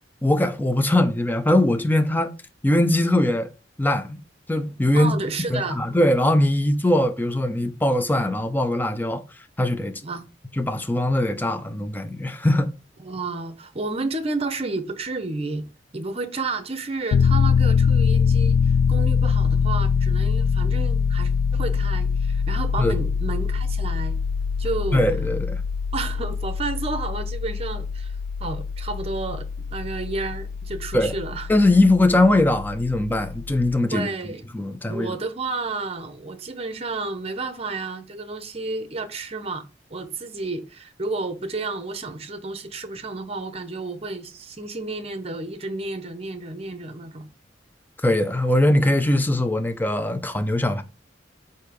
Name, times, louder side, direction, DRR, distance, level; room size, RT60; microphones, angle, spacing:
voice 1, 0.2-2.3 2.6-3.5 3.8-4.2 4.5-5.1 5.5-9.2 9.6-10.0 10.6-12.7 22.8-23.0 24.9-25.6 30.9-31.1 31.5-34.1 34.5-35.1 48.0-50.8, left 1 dB, 10° left, 0.6 m, -21 dB
voice 2, 4.9-5.8 10.0-10.3 13.0-15.6 15.9-24.2 24.6-25.0 25.9-28.1 28.4-31.5 33.9-34.5 34.9-39.6 39.9-47.3, right 3 dB, 35° right, 0.9 m, -31 dB
Piano, 17.1-33.8, left 6 dB, 85° left, 0.3 m, -23 dB
8.2 x 2.8 x 5.2 m
head